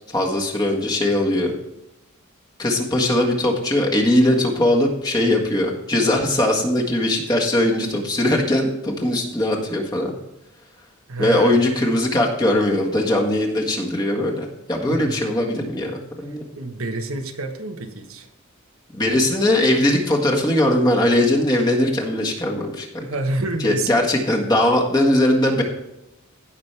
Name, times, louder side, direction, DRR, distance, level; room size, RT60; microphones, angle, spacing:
voice 1, 0.1-1.5 2.6-10.1 11.2-16.4 18.9-22.9 23.6-25.6, left 1 dB, 20° left, -1 dB, 1.7 m, -20 dB
voice 2, 11.1-11.6 14.9-15.3 16.2-16.3 16.6-18.3 23.0-23.9, right 2 dB, 80° right, 5 dB, 1.3 m, -28 dB
16.0 x 6.1 x 3.4 m, 0.90 s
head